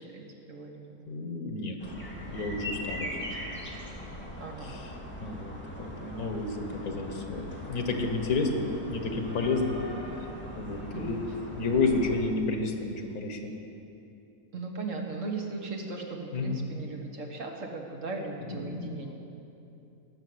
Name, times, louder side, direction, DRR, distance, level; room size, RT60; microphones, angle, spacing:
voice 1, 0.0-0.9 3.3-3.4 4.4-4.7 10.9-11.2 14.5-19.1, right 3 dB, 60° right, 2 dB, 1.6 m, -38 dB
voice 2, 1.1-1.8 2.3-3.2 4.7-4.8 5.2-9.8 10.6-11.3 11.5-13.5 16.3-16.6 18.5-18.9, left 3 dB, 90° left, 4 dB, 1.7 m, -31 dB
sound 1, 1.8-12.2, left 1 dB, 10° left, 1.9 m, -40 dB
18.0 x 6.3 x 7.8 m, 2.7 s
omnidirectional pair, 1.5 m